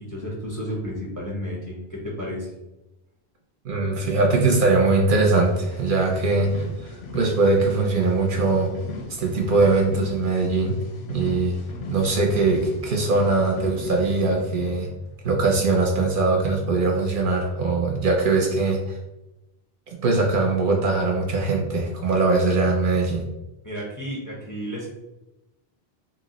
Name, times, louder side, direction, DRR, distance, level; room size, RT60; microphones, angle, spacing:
voice 1, 0.0-2.5 23.6-24.9, equal, 25° left, -3 dB, 0.5 m, -32 dB
voice 2, 3.6-8.7 9.1-10.8 11.1-11.5 11.9-14.9 15.2-19.0 19.9-23.2, right 3 dB, 60° right, 0 dB, 0.7 m, -21 dB
sound 1, 5.4-15.3 15.8-16.1, left 4 dB, 80° left, 0.8 m, -39 dB
2.7 x 2.0 x 3.8 m, 0.96 s
omnidirectional pair, 1.1 m